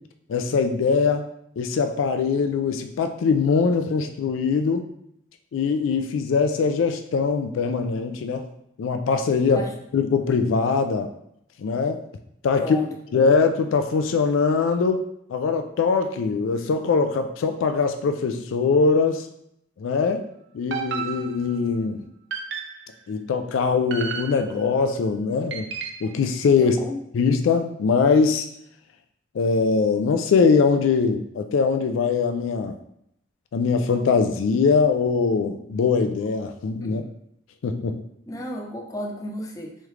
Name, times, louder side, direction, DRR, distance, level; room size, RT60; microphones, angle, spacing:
voice 1, 0.3-1.3 1.6-4.9 5.5-8.5 8.8-9.6 9.9-11.1 11.6-12.0 12.4-12.8 13.1-15.0 15.3-19.3 19.8-20.2 20.5-22.0 23.1-25.7 26.0-26.8 27.1-28.5 29.3-32.8 33.5-37.0 37.6-38.0, left 5 dB, 90° left, 7 dB, 0.3 m, -22 dB
voice 2, 12.5-13.2 26.6-27.0 36.8-37.1 38.3-39.8, left 1 dB, 15° left, 1 dB, 0.4 m, -33 dB
sound 1, 20.7-21.7 22.3-23.0 23.9-24.7 25.5-26.2, right 6 dB, 65° right, 0.5 m, -33 dB
3.6 x 3.2 x 3.1 m, 0.75 s
head